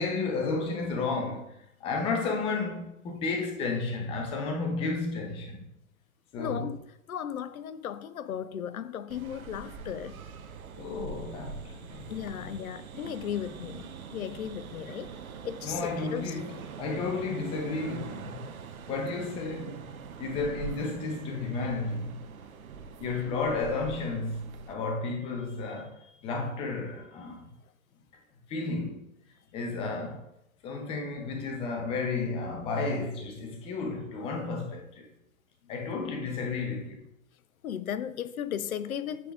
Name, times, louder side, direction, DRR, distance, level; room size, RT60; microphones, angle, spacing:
voice 1, 0.0-5.7 6.3-6.7 10.8-12.1 15.6-18.5 18.9-19.8 20.2-22.2 23.0-27.5 28.5-29.1 29.5-30.3 30.6-35.1 35.7-37.0, left 3 dB, 15° left, 0.6 m, -32 dB
voice 2, 6.4-6.8 7.1-10.2 12.1-15.1 15.4-16.4 34.2-34.5 35.6-35.7 37.6-39.3, left 9 dB, 85° left, 0.6 m, -36 dB
sound 1, 9.1-24.7, right 5 dB, 80° right, 0.8 m, -43 dB
8.3 x 4.9 x 2.4 m
hypercardioid pair, 135°, 41 cm